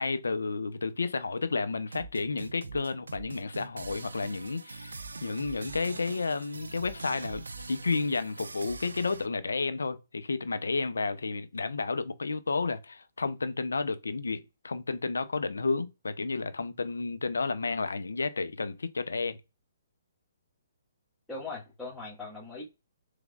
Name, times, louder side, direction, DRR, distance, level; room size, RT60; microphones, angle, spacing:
voice 1, 0.0-19.4, left 4 dB, 85° left, 0.5 m, -31 dB
sound 1, 1.8-9.3, right 4 dB, 90° right, 0.4 m, -43 dB
voice 2, 21.3-22.6, left 3 dB, 5° left, 1.5 m, -40 dB
3.5 x 3.3 x 2.3 m
hypercardioid pair, 140°, 0 cm